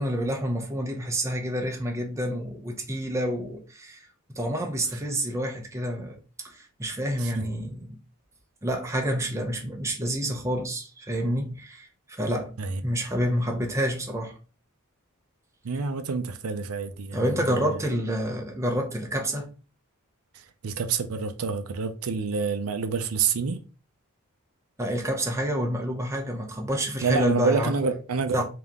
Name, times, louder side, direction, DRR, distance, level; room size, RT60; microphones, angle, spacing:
voice 1, 0.0-4.0 4.3-6.2 6.4-7.9 8.6-12.5 12.8-14.3 17.1-19.5 24.8-27.7 28.3-28.4, equal, 15° right, 0.6 m, -28 dB
voice 2, 15.6-17.8 20.3-23.6 27.0-28.4, right 5 dB, 80° right, 0.5 m, -28 dB
3.5 x 2.9 x 3.6 m
head